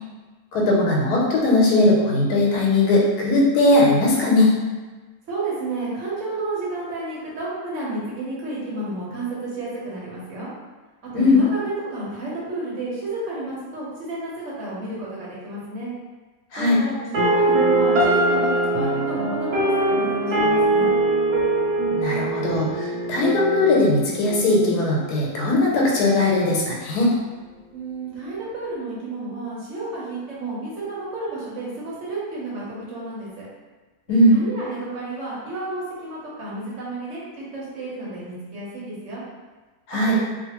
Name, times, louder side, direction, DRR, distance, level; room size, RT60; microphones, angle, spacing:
voice 1, 0.5-4.5 11.1-11.4 16.5-16.8 21.9-27.1 34.1-34.4 39.9-40.2, left 2 dB, 85° left, -3 dB, 1.2 m, -19 dB
voice 2, 5.3-10.5 11.1-15.9 16.6-20.9 27.7-33.4 34.1-39.2 40.1-40.2, right 2 dB, 55° right, -7 dB, 1.1 m, -31 dB
sound 1, 17.1-25.1, right 2 dB, 75° right, 0.5 m, -22 dB
2.6 x 2.5 x 2.8 m, 1.3 s
omnidirectional pair, 1.7 m